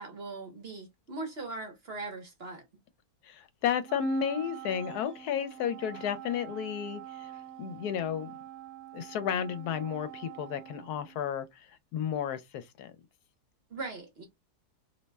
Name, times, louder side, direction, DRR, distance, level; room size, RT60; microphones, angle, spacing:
voice 1, 0.0-2.6 13.7-14.2, right 3 dB, 50° right, 0.9 m, -40 dB
voice 2, 3.2-7.3 7.6-8.3 8.9-12.9, left 8 dB, 80° left, 1.1 m, -33 dB
Wind instrument woodwind instrument, 3.8-11.5, right 12 dB, 75° right, 1.0 m, -46 dB
2.7 x 2.1 x 3.2 m
omnidirectional pair, 1.7 m